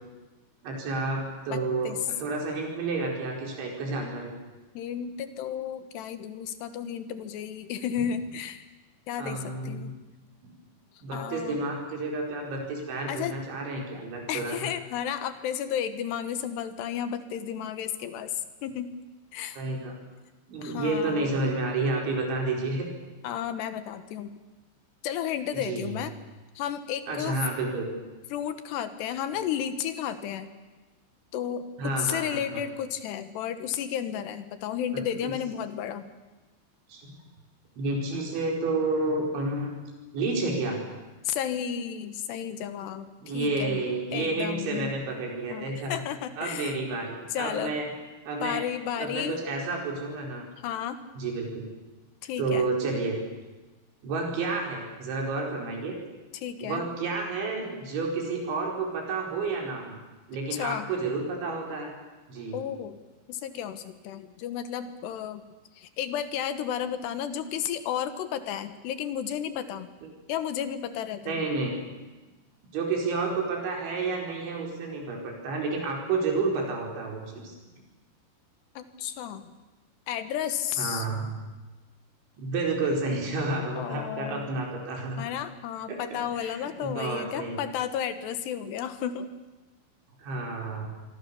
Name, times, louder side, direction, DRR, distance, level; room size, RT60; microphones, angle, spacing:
voice 1, 0.6-4.4 9.2-9.9 11.0-14.7 19.6-19.9 20.5-22.9 25.5-25.9 27.1-27.9 31.8-32.6 35.2-35.3 36.9-37.1 37.8-39.7 40.1-40.8 43.2-46.0 46.4-47.9 48.3-48.6 49.0-50.5 51.2-51.7 52.4-53.2 54.0-56.0 56.6-60.0 60.3-61.9 62.3-62.6 71.3-71.7 72.7-77.6 80.8-81.3 82.4-85.2 85.9-86.0 86.3-87.6 90.2-90.9, right 3 dB, 90° right, 0 dB, 7.1 m, -30 dB
voice 2, 1.5-2.0 4.7-8.6 9.1-9.9 11.1-11.6 13.1-13.4 14.3-18.9 19.3-19.6 20.6-21.3 23.2-24.3 25.0-26.1 26.6-27.4 28.3-30.5 31.3-36.1 41.2-43.8 44.1-44.9 45.5-46.8 47.3-47.7 48.4-49.3 50.6-51.0 52.2-52.7 56.3-56.8 60.5-60.9 62.5-63.0 63.3-65.4 65.8-69.9 70.3-71.4 78.8-79.5 80.1-81.1 83.8-84.5 85.2-89.3, left 9 dB, 75° left, 10 dB, 3.2 m, -33 dB
26.0 x 24.0 x 7.0 m, 1.2 s
omnidirectional pair, 5.2 m